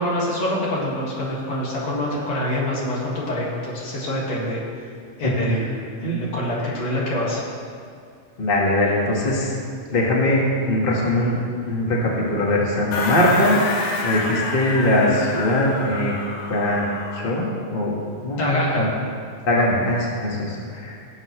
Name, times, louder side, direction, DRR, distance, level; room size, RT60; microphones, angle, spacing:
voice 1, 0.0-4.6 5.2-7.4 18.4-18.9, left 1 dB, 55° left, -5 dB, 3.0 m, -25 dB
voice 2, 5.2-5.7 6.0-6.2 8.4-9.5 9.9-11.4 11.6-13.6 14.0-16.1 16.5-16.9 17.1-17.9 18.2-18.9 19.5-20.9, left 1 dB, 35° left, -3 dB, 0.8 m, -21 dB
sound 1, 12.9-17.3, left 3 dB, 80° left, 2.4 m, -28 dB
17.5 x 8.0 x 3.1 m, 2.2 s
omnidirectional pair, 3.7 m